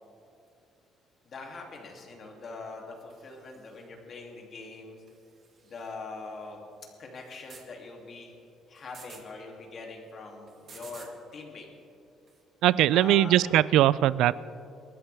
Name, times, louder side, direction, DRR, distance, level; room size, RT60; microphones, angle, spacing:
voice 1, 1.2-5.0 5.6-6.6 7.0-8.3 8.7-11.7 12.9-13.4, left 3 dB, 35° left, 0 dB, 2.7 m, -43 dB
sound 1, 3.1-3.8 5.1-5.9 7.1-7.7 8.8-9.2 10.5-11.1 12.3-12.4, right 5 dB, 35° right, 2.1 m, -52 dB
voice 2, 12.6-14.3, right 13 dB, 75° right, 19 dB, 0.4 m, -21 dB
28.0 x 13.5 x 3.5 m, 2.6 s
cardioid pair, 170°, 0 cm